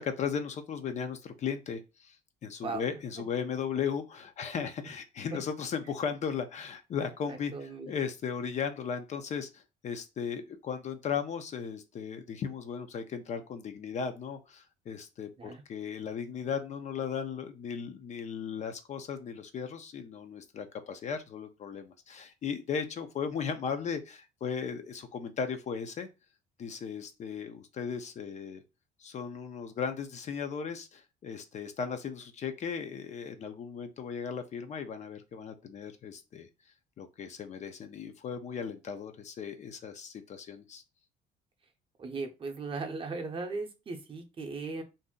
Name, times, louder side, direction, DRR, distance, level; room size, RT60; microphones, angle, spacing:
voice 1, 0.0-2.2 2.4-26.1 26.6-28.6 29.0-36.5 37.0-40.8, left 6 dB, 45° left, 8 dB, 0.5 m, -36 dB
voice 2, 7.3-7.9 15.4-15.6 42.0-44.8, right 3 dB, 30° right, 3 dB, 0.7 m, -37 dB
2.6 x 2.0 x 3.6 m, 0.27 s
cardioid pair, 110°, 17 cm